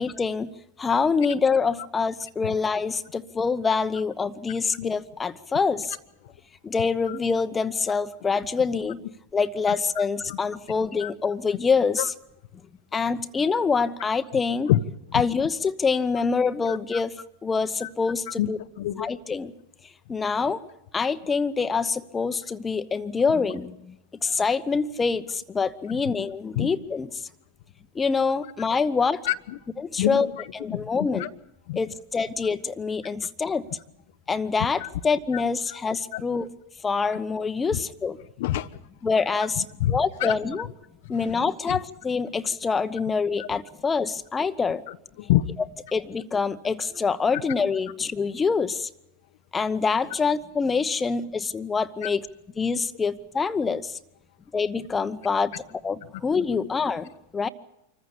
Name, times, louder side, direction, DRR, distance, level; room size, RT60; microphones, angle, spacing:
voice 1, 0.0-6.0 6.6-9.0 9.3-12.0 12.9-14.7 15.1-17.1 17.4-18.6 19.0-19.5 20.1-20.6 20.9-23.9 24.2-27.1 27.9-29.2 29.9-30.3 30.5-31.3 31.7-33.7 34.3-36.5 36.8-38.2 39.0-39.6 39.9-40.7 41.1-44.8 45.9-48.9 49.5-52.3 52.6-54.0 54.5-55.5 55.8-57.5, left 5 dB, 20° left, 11 dB, 1.0 m, -25 dB
voice 2, 18.8-19.1 25.9-26.1 26.6-26.7 29.2-29.6 30.0-30.4 30.7-31.3 31.7-31.8 34.8-34.9 35.7-35.8 36.1-36.2 37.7-37.8 38.4-38.7 39.6-40.3 41.0-41.3 41.7-41.8 43.4-43.5 44.9-45.5 52.0-52.1, left 14 dB, 65° left, 11 dB, 0.7 m, -27 dB
25.5 x 14.5 x 8.5 m, 0.87 s
hypercardioid pair, 100°, 0 cm